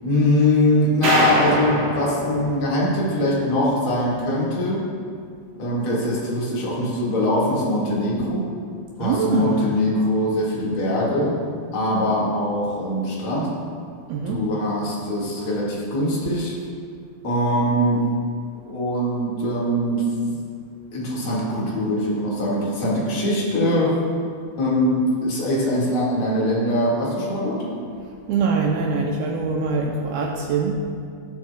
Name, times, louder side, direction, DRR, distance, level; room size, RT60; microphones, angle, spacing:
voice 1, 0.0-4.9 5.6-8.5 9.0-11.4 11.7-13.5 14.3-16.6 17.2-18.0 18.7-20.1 20.9-24.0 24.6-27.7, left 1 dB, 40° left, -6 dB, 2.2 m, -22 dB
sound 1, 1.0-3.4, right 1 dB, 50° right, 2.9 m, -24 dB
voice 2, 9.0-9.7 14.1-14.4 28.3-30.9, right 4 dB, 80° right, 0 dB, 2.3 m, -23 dB
18.0 x 7.7 x 2.3 m, 2.2 s
omnidirectional pair, 4.9 m